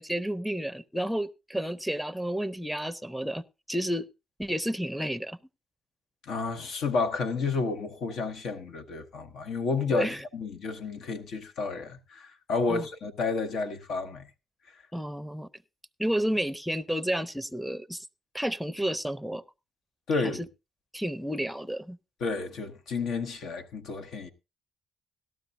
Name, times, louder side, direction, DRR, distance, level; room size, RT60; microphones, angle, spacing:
voice 1, 0.0-4.1 4.4-5.4 9.9-10.2 12.7-12.9 14.9-15.5 16.0-18.1 18.3-19.4 20.2-20.3 20.9-22.0, equal, ahead, 0.6 m, -31 dB
voice 2, 6.2-14.3 20.1-20.4 22.2-24.3, left 4 dB, 75° left, 1.2 m, -31 dB
17.5 x 12.5 x 2.6 m
cardioid pair, 90°, 0 cm